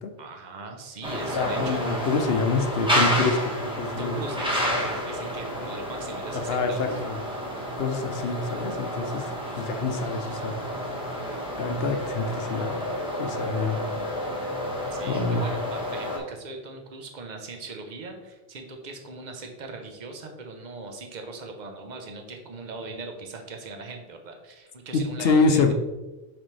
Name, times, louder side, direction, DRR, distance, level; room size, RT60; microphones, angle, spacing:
voice 1, 0.2-2.0 4.0-7.0 14.9-25.7, right 3 dB, 45° right, 4 dB, 0.9 m, -39 dB
sound 1, 1.0-16.2, equal, 5° right, 1.1 m, -30 dB
voice 2, 1.3-4.2 4.7-4.9 6.3-7.2 7.8-9.2 9.6-10.5 11.6-12.8 13.2-13.8 14.4-14.5 15.1-15.4 24.9-25.7, left 4 dB, 75° left, 7 dB, 0.8 m, -26 dB
6.0 x 5.2 x 3.3 m, 1.1 s
omnidirectional pair, 1.1 m